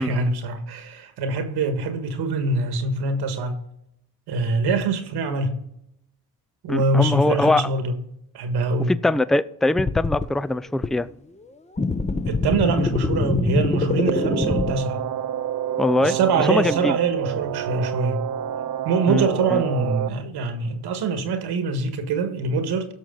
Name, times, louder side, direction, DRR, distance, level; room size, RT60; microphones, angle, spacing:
voice 1, 0.0-3.6 4.3-5.6 6.6-8.0 8.3-8.9 12.2-15.0 16.0-18.2 18.8-22.9, right 3 dB, 80° right, 1.7 m, -24 dB
voice 2, 6.7-7.7 8.9-11.1 15.8-16.2 16.5-16.9 19.1-19.3 19.5-19.6, left 2 dB, ahead, 0.3 m, -22 dB
sound 1, 9.8-10.3 10.8-10.9 11.8-14.7, left 3 dB, 15° left, 0.8 m, -24 dB
sound 2, 14.1-20.1, right 10 dB, 50° right, 0.7 m, -28 dB
16.5 x 6.4 x 3.9 m
supercardioid pair, 60°, 39 cm